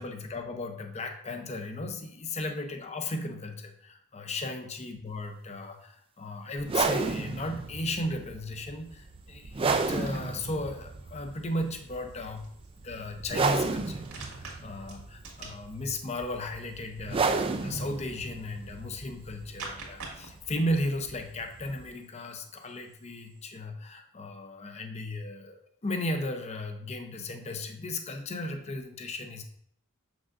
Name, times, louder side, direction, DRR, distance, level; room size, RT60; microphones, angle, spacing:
voice 1, 0.0-12.5 12.8-29.4, left 1 dB, 30° left, 5 dB, 0.6 m, -35 dB
sound 1, 6.6-21.9, right 4 dB, 25° right, 0.3 m, -33 dB
sound 2, 8.8-23.5, right 3 dB, 90° right, 1.8 m, -49 dB
6.2 x 6.1 x 2.5 m, 0.68 s
head